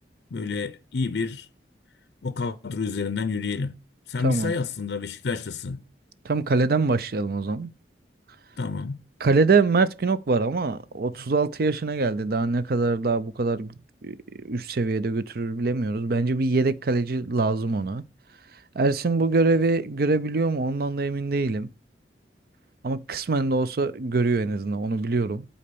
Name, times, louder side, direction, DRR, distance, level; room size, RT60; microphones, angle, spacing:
voice 1, 0.3-1.5 2.2-3.8 4.1-5.8 8.6-9.0, left 4 dB, 70° left, 0.5 m, -29 dB
voice 2, 6.2-7.7 9.2-13.7 14.0-14.2 14.4-18.0 18.7-21.7 22.8-25.5, right 3 dB, 55° right, 0.5 m, -24 dB
8.5 x 4.2 x 6.8 m
head